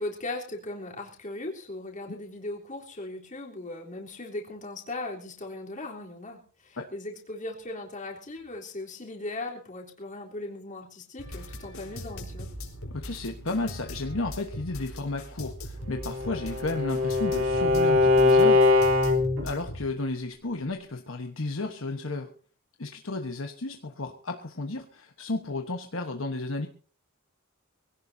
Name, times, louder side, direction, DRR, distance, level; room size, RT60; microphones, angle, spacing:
voice 1, 0.0-12.5, left 2 dB, 35° left, -1 dB, 3.6 m, -38 dB
sound 1, 11.2-19.8, equal, 85° left, 4.2 m, -40 dB
voice 2, 12.9-22.3 22.8-26.7, left 2 dB, 65° left, 4 dB, 1.2 m, -33 dB
Bowed string instrument, 15.9-19.5, left 3 dB, 70° right, 3.9 m, -22 dB
24.0 x 17.0 x 2.8 m, 0.40 s
head